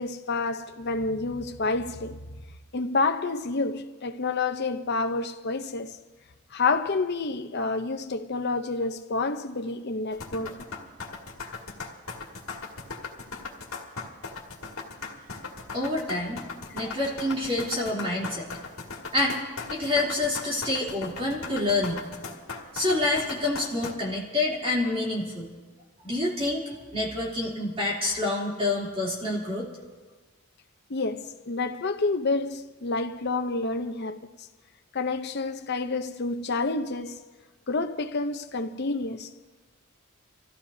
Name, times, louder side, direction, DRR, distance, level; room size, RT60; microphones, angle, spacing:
voice 1, 0.0-2.2 2.7-6.0 6.5-10.7 16.7-16.8 30.9-34.2 34.9-37.2 37.7-39.3, left 3 dB, 50° left, 0.7 m, -29 dB
sound 1, 10.1-23.9, left 4 dB, 80° left, 2.1 m, -38 dB
voice 2, 15.7-16.4 16.7-18.5 19.1-19.4 19.7-22.1 22.7-25.5 26.0-26.6 26.9-29.7, left 2 dB, 25° right, 3.2 m, -27 dB
26.0 x 15.0 x 2.8 m
head